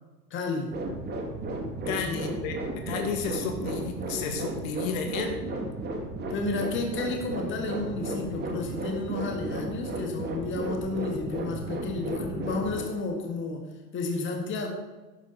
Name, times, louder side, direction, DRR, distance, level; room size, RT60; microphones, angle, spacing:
voice 1, 0.3-0.8 1.8-2.3 6.3-14.7, left 3 dB, 25° left, 3 dB, 1.9 m, -32 dB
sound 1, 0.7-12.8, right 2 dB, 20° right, 2.3 m, -34 dB
voice 2, 1.9-2.6 2.9-5.5, left 5 dB, 55° left, 4 dB, 2.1 m, -32 dB
13.0 x 10.5 x 4.1 m, 1.2 s
hypercardioid pair, 115°, 49 cm